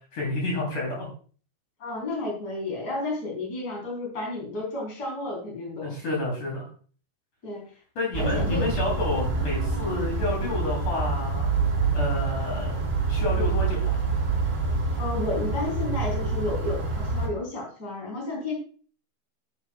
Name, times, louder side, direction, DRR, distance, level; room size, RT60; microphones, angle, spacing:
voice 1, 0.1-1.1 5.8-6.6 8.0-11.5 11.9-14.0, left 2 dB, 60° left, -2 dB, 4.6 m, -30 dB
voice 2, 1.8-6.0 7.4-7.7 8.2-8.7 15.0-18.5, left 2 dB, 25° left, -2 dB, 4.3 m, -32 dB
sound 1, 8.1-17.3, right 4 dB, 20° right, 4.6 m, -26 dB
11.5 x 10.0 x 2.3 m, 0.42 s
omnidirectional pair, 4.1 m